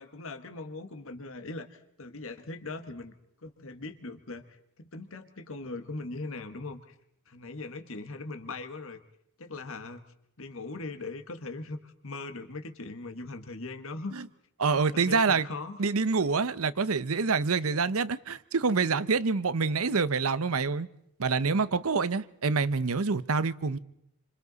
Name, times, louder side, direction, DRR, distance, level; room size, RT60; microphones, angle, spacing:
voice 1, 0.0-3.1 3.4-6.9 7.3-9.0 9.4-10.0 10.4-14.3 14.7-15.8, left 3 dB, 65° left, 8 dB, 1.5 m, -40 dB
voice 2, 14.6-15.5 15.8-20.9 21.2-23.8, right 4 dB, 70° right, 16 dB, 0.8 m, -26 dB
28.0 x 26.0 x 4.1 m, 0.77 s
head